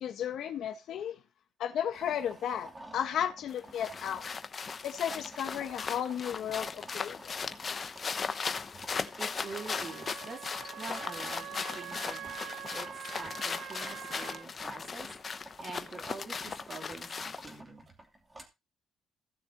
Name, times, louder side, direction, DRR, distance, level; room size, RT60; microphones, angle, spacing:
voice 1, 0.0-1.2 1.6-4.3 4.8-7.4, left 9 dB, 75° left, 1.5 m, -34 dB
sound 1, 1.9-18.4, right 1 dB, 20° right, 2.7 m, -53 dB
sound 2, 3.5-17.6, left 5 dB, 40° left, 1.0 m, -38 dB
voice 2, 9.2-17.9, right 3 dB, 40° right, 3.4 m, -46 dB
Wind instrument woodwind instrument, 9.3-14.5, right 11 dB, 75° right, 0.5 m, -44 dB
16.5 x 6.7 x 3.0 m
cardioid pair, 90°, 0 cm